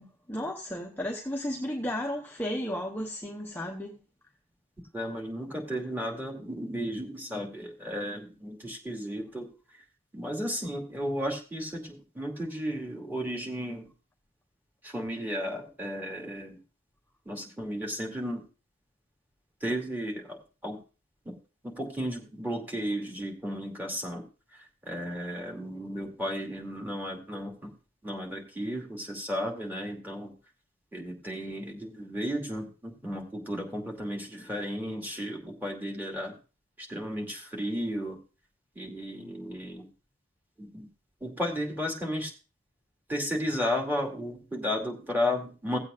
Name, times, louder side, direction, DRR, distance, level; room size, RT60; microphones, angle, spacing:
voice 1, 0.0-4.0, left 1 dB, 10° left, 0.9 m, -34 dB
voice 2, 4.9-9.5 10.1-13.9 14.8-16.6 17.3-18.4 19.6-20.4 20.6-20.8 21.3-21.4 21.6-24.2 24.9-27.7 28.0-30.3 30.9-36.3 36.9-38.2 38.8-39.9 40.6-40.9 41.2-42.3 43.1-45.8, equal, 10° right, 2.5 m, -34 dB
17.5 x 8.1 x 2.5 m
head